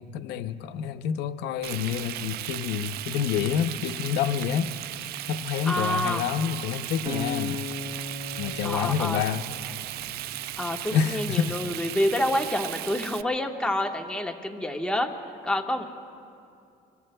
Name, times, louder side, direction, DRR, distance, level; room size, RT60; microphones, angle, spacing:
voice 1, 0.0-7.6 8.4-9.5 10.9-11.6, left 8 dB, 85° left, 10 dB, 0.6 m, -28 dB
Frying (food), 1.6-13.2, right 14 dB, 70° right, 0.4 m, -36 dB
voice 2, 5.6-6.3 8.6-9.2 10.6-15.1 15.4-15.8, left 1 dB, 5° left, 2 dB, 1.2 m, -28 dB
Acoustic guitar, 7.1-10.3, left 3 dB, 30° right, 2.0 m, -36 dB
26.0 x 24.5 x 2.2 m, 2.6 s
cardioid pair, 110°, 17 cm